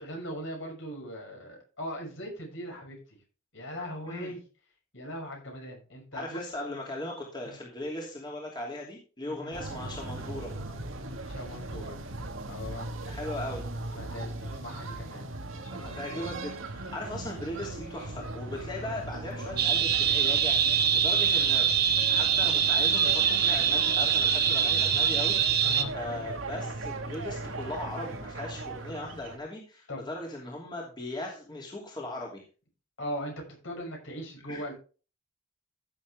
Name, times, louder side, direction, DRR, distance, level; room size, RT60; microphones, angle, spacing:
voice 1, 0.0-3.2 3.5-4.4 4.9-6.4 9.3-9.5 11.2-12.1 12.4-13.1 13.9-15.3 15.6-16.2 25.6-25.9 29.9-30.0 33.0-34.7, equal, 65° left, 1 dB, 6.1 m, -40 dB
voice 2, 6.1-10.5 13.1-13.6 15.9-21.7 22.1-25.6 25.9-32.4 34.5-34.6, left 1 dB, 20° left, -2 dB, 2.8 m, -38 dB
sound 1, 9.5-29.4, right 2 dB, 75° right, 1.8 m, -38 dB
sound 2, 19.6-25.8, right 7 dB, 50° right, 1.5 m, -24 dB
15.0 x 7.3 x 3.5 m, 0.36 s
head